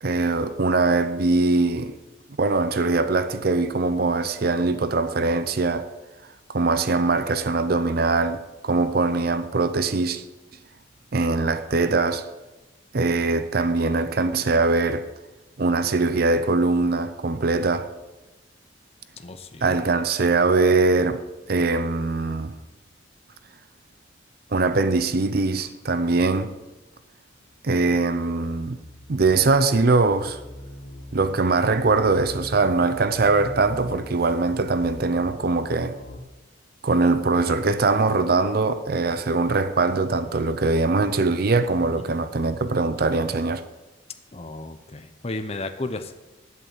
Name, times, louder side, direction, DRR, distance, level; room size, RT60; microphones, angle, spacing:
voice 1, 0.0-1.9 2.4-5.9 6.5-10.2 11.1-12.3 12.9-15.1 15.6-17.9 19.6-22.5 24.5-26.6 27.6-28.8 29.1-30.4 31.1-36.0 36.8-43.6, right 3 dB, 50° right, 0.6 m, -22 dB
voice 2, 19.2-19.8 42.1-42.2 44.3-46.1, left 2 dB, 30° left, 0.7 m, -34 dB
sound 1, 27.4-36.2, left 1 dB, 85° left, 1.6 m, -42 dB
9.7 x 8.2 x 7.5 m
head